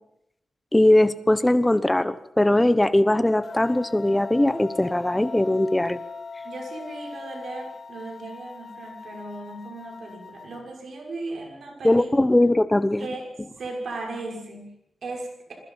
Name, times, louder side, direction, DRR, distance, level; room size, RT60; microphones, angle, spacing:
voice 1, 0.7-6.0 11.8-13.1, left 1 dB, 10° left, 13 dB, 1.0 m, -20 dB
Wind instrument woodwind instrument, 3.2-7.9, left 4 dB, 30° left, 3.4 m, -39 dB
sound 1, 3.4-10.6, left 5 dB, 45° left, 4.9 m, -45 dB
voice 2, 6.4-12.5 13.0-13.2 13.6-15.5, right 2 dB, 65° right, 1 dB, 6.1 m, -37 dB
27.0 x 21.0 x 5.7 m, 0.79 s
wide cardioid pair, 155°, 0 cm